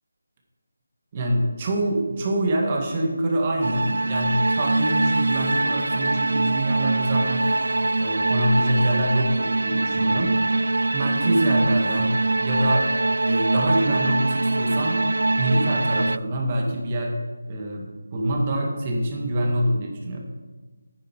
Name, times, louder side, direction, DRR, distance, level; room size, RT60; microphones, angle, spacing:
voice 1, 1.1-7.5 8.0-10.3 10.9-12.1 12.4-12.9 13.2-15.0 15.4-17.2 17.5-17.9 18.1-20.3, right 1 dB, 25° right, 0 dB, 1.8 m, -25 dB
sound 1, 3.6-16.2, right 2 dB, 75° right, 0.4 m, -23 dB
10.5 x 9.3 x 4.6 m, 1.2 s
figure-of-eight pair, 165°, 0 cm